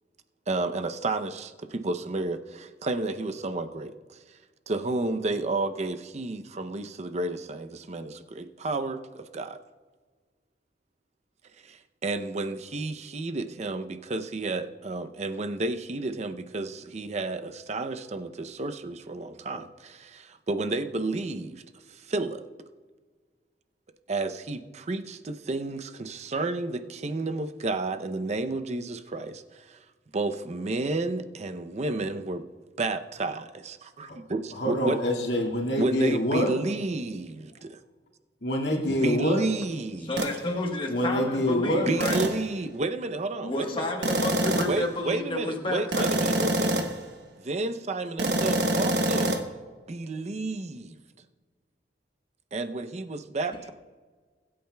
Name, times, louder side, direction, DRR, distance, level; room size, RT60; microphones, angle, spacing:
voice 1, 0.5-4.2 4.7-9.6 11.6-21.6 21.9-22.5 24.1-29.8 30.1-32.5 32.8-35.0 35.8-37.8 38.9-40.2 41.9-43.9 44.7-46.7 47.4-49.3 49.9-51.0 52.5-53.7, right 2 dB, 40° right, 9 dB, 0.6 m, -31 dB
voice 2, 34.6-36.5 38.4-39.4 40.9-41.9, equal, 90° left, 0 dB, 2.0 m, -26 dB
voice 3, 40.0-42.2 43.4-46.3, left 2 dB, 30° left, 1 dB, 1.2 m, -31 dB
sound 1, 40.2-40.4 42.0-42.5 44.0-44.9 45.9-47.0 48.2-49.4, right 1 dB, 75° right, 1.2 m, -26 dB
22.0 x 8.6 x 2.2 m, 1.5 s
head